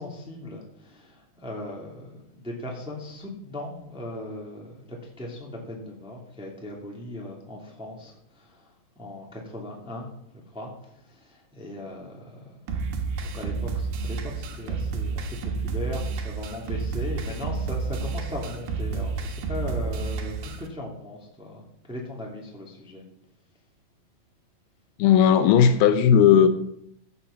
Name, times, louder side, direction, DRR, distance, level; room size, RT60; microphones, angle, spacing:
voice 1, 0.0-8.7 8.9-10.1 10.3-12.6 13.2-23.0, left 1 dB, ahead, -1 dB, 1.6 m, -38 dB
sound 1, 12.7-20.7, right 4 dB, 85° right, 3.4 m, -30 dB
voice 2, 25.0-26.5, left 8 dB, 80° left, 10 dB, 2.5 m, -16 dB
14.5 x 7.0 x 5.7 m, 0.75 s
omnidirectional pair, 4.6 m